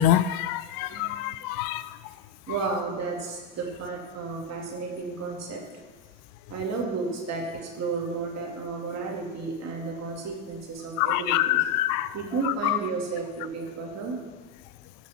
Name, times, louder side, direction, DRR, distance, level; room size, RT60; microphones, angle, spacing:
voice 1, 0.0-1.8 11.0-12.1 12.4-12.8, left 13 dB, 60° left, 0.6 m, -25 dB
voice 2, 2.5-5.6 6.5-11.6 12.1-14.2, right 4 dB, 45° right, 2.6 m, -32 dB
16.5 x 5.9 x 4.4 m
hypercardioid pair, 90°, 38 cm